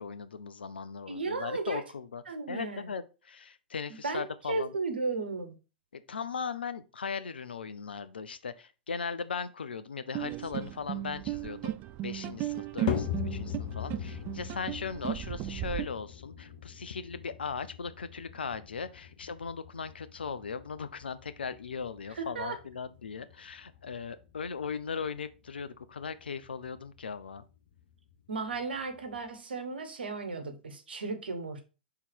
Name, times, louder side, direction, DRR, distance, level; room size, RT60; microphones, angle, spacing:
voice 1, 0.0-4.7 5.9-11.7 12.0-27.4, left 5 dB, 80° left, 0.6 m, -38 dB
voice 2, 1.1-1.8 2.3-2.9 4.0-5.5 22.2-22.6 28.3-31.6, right 3 dB, 75° right, 1.3 m, -35 dB
sound 1, 10.1-15.8, right 14 dB, 35° right, 0.4 m, -36 dB
sound 2, 12.9-29.3, left 8 dB, 55° left, 1.0 m, -41 dB
5.8 x 3.7 x 4.4 m
figure-of-eight pair, 105°, 5 cm